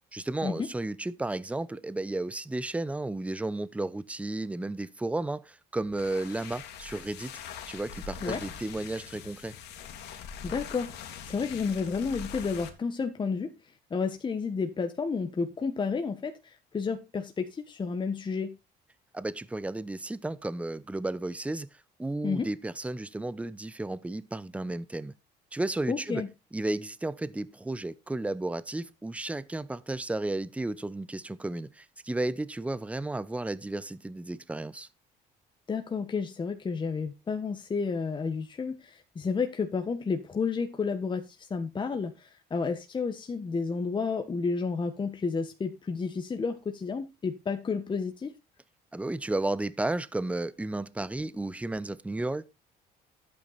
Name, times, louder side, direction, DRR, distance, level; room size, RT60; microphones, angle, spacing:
voice 1, 0.1-7.3 7.7-9.6 19.1-21.7 22.0-25.1 25.5-26.2 26.5-34.9 48.9-52.5, right 2 dB, 10° right, 0.7 m, -33 dB
sound 1, 5.8-12.8, left 6 dB, 80° left, 2.6 m, -43 dB
voice 2, 10.4-13.5 13.9-18.6 22.2-22.5 25.9-26.3 35.7-48.3, left 5 dB, 30° left, 1.4 m, -31 dB
12.0 x 8.8 x 4.1 m
cardioid pair, 110°, 17 cm